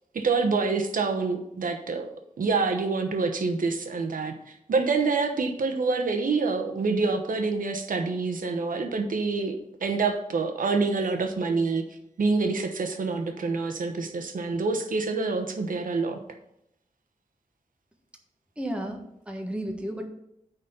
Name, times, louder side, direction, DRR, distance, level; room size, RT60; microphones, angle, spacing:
voice 1, 0.1-11.8 12.2-16.2, right 4 dB, 80° right, 5 dB, 1.1 m, -27 dB
voice 2, 18.6-20.1, right 1 dB, 10° right, 2 dB, 1.3 m, -33 dB
9.3 x 4.1 x 7.1 m, 0.78 s
wide cardioid pair, 120°, 14 cm